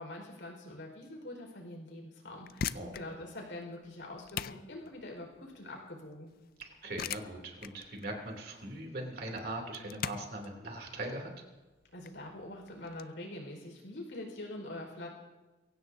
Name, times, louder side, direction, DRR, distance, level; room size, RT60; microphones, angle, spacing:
voice 1, 0.0-6.3 11.9-15.1, left 1 dB, 75° left, 1 dB, 4.8 m, -44 dB
sound 1, 2.3-13.0, left 7 dB, 50° left, 0.4 m, -43 dB
voice 2, 6.6-11.3, right 1 dB, 55° right, 2 dB, 3.0 m, -40 dB
23.0 x 16.5 x 2.7 m, 1.2 s
head